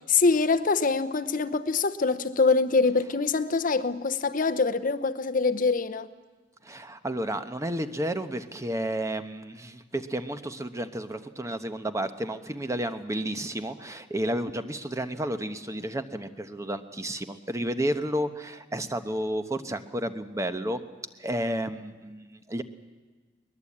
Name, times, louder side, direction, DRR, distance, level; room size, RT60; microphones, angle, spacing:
voice 1, 0.1-6.1, left 4 dB, 50° left, 0.8 m, -24 dB
voice 2, 6.6-20.8 21.2-22.6, right 1 dB, 15° right, 1.0 m, -31 dB
22.0 x 20.0 x 8.6 m
head